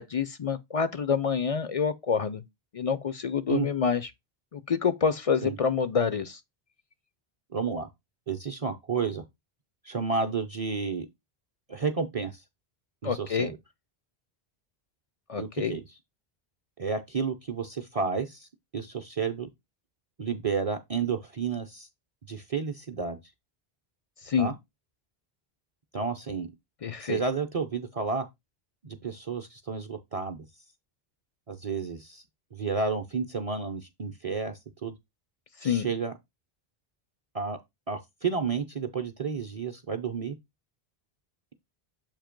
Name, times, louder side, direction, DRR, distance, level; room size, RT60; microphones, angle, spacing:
voice 1, 0.0-2.4 2.7-4.1 4.5-6.4 13.0-13.5 15.3-15.8 24.2-24.5 26.8-27.2 35.6-35.9, left 6 dB, 50° left, 0.5 m, -27 dB
voice 2, 7.5-7.9 8.3-9.2 9.8-11.1 11.7-12.4 13.0-13.6 15.4-15.8 16.8-18.5 18.7-19.5 20.2-21.9 22.3-23.2 24.4-24.5 25.9-26.5 27.0-28.3 28.8-30.4 31.5-32.2 32.5-34.9 35.6-36.1 37.3-37.6 37.9-40.4, right 5 dB, 40° right, 0.6 m, -31 dB
7.3 x 2.8 x 5.1 m
omnidirectional pair, 1.0 m